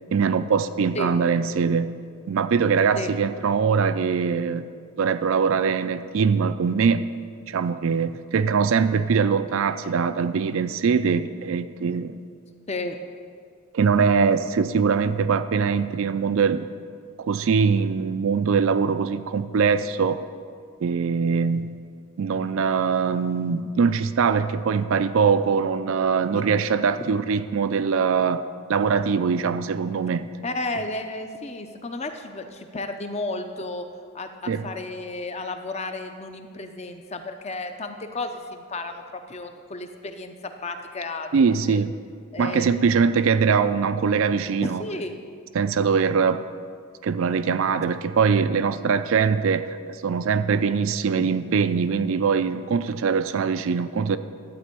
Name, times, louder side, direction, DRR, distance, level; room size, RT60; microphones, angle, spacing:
voice 1, 0.1-4.7 5.0-7.1 7.5-12.2 13.7-16.7 17.2-20.2 20.8-21.8 22.2-30.3 34.5-34.7 41.3-41.9 42.4-44.8 45.5-46.4 47.0-49.8 50.0-54.2, right 5 dB, 60° right, 12 dB, 0.4 m, -22 dB
voice 2, 12.7-13.0 26.3-26.4 27.0-27.1 30.4-33.9 34.1-41.3 41.7-41.8 42.3-42.8 44.6-45.1 51.1-51.2, left 2 dB, 30° left, 6 dB, 0.6 m, -33 dB
12.0 x 4.4 x 8.3 m, 2.2 s
head